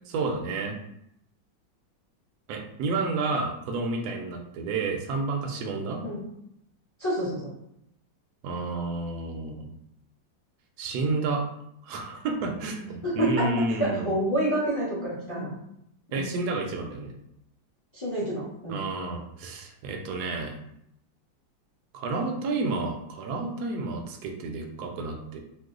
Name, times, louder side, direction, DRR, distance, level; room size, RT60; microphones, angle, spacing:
voice 1, 0.1-0.7 2.5-6.0 8.4-9.7 10.8-11.4 11.8-14.1 16.1-17.1 18.7-20.5 21.9-25.4, right 3 dB, 70° right, 3 dB, 1.0 m, -30 dB
voice 2, 7.0-7.5 13.0-13.5 13.8-15.5 16.1-16.2 17.9-18.8, right 1 dB, 35° left, -8 dB, 0.4 m, -28 dB
3.0 x 2.0 x 3.6 m, 0.77 s
omnidirectional pair, 2.0 m